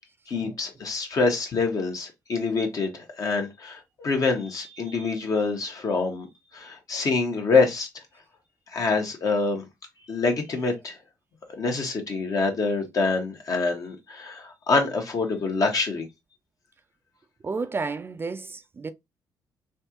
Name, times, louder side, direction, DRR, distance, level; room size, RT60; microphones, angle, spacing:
voice 1, 0.3-6.3 6.5-7.9 8.7-9.6 10.1-11.0 11.6-16.1, left 4 dB, 50° left, 1.2 m, -26 dB
voice 2, 17.4-18.9, right 4 dB, 30° right, 0.4 m, -32 dB
3.3 x 2.4 x 2.8 m
supercardioid pair, 60°, 7 cm